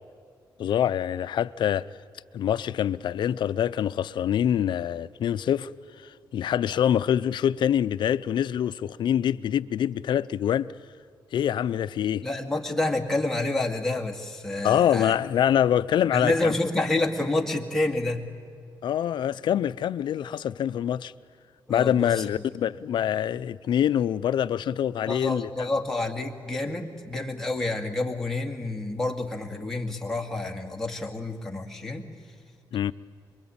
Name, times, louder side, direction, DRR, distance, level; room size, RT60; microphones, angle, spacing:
voice 1, 0.6-1.9 2.3-5.7 6.0-10.7 11.3-12.2 14.6-16.5 18.8-21.1 21.7-25.5 32.7-32.9, left 10 dB, 70° left, 0.6 m, -25 dB
voice 2, 12.2-15.2 16.1-18.2 21.7-22.2 25.1-32.1, left 2 dB, 5° left, 2.2 m, -28 dB
24.5 x 23.0 x 8.8 m
cardioid pair, 125°, 8 cm